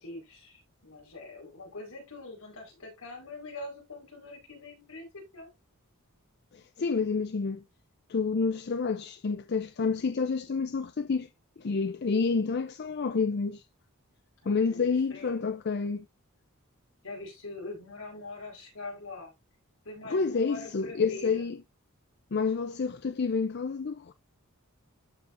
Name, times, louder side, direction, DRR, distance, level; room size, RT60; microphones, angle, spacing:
voice 1, 0.0-5.5 14.4-15.5 17.0-19.3 19.8-21.5, left 2 dB, 75° left, 4.2 m, -43 dB
voice 2, 6.5-7.6 8.1-11.3 11.6-13.6 14.5-16.0 20.1-21.6 22.3-24.1, left 4 dB, 50° left, 0.5 m, -29 dB
13.0 x 4.9 x 2.5 m
head